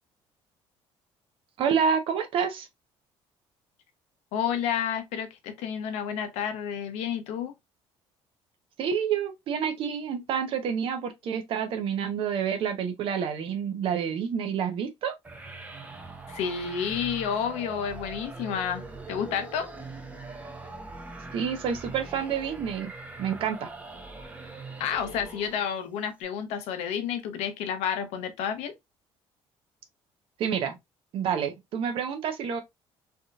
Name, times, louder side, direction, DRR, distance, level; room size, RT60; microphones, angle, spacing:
voice 1, 1.6-2.7 8.8-15.1 21.3-22.9 23.2-23.7 30.4-30.8 31.1-32.6, right 7 dB, 55° right, 0.8 m, -28 dB
voice 2, 4.3-7.5 16.3-19.7 24.8-28.7, left 8 dB, 90° left, 0.8 m, -30 dB
sound 1, 15.2-25.8, right 3 dB, 15° right, 0.6 m, -42 dB
3.5 x 2.8 x 2.4 m
cardioid pair, 140°, 11 cm